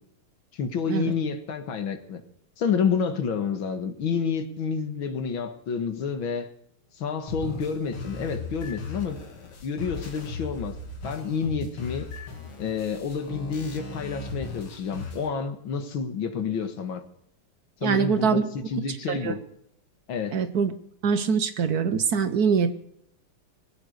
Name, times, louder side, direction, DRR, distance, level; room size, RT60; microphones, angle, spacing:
voice 1, 0.5-2.2 2.6-6.5 7.0-9.2 9.6-10.8 11.0-12.1 12.6-17.0 17.8-19.4 20.1-20.4, left 6 dB, 70° left, 2.3 m, -29 dB
sound 1, 7.3-15.3, left 4 dB, 85° left, 3.1 m, -38 dB
voice 2, 17.8-18.5 19.1-19.3 20.3-20.7 21.0-22.7, right 6 dB, 60° right, 1.2 m, -23 dB
21.0 x 8.4 x 6.5 m
omnidirectional pair, 2.3 m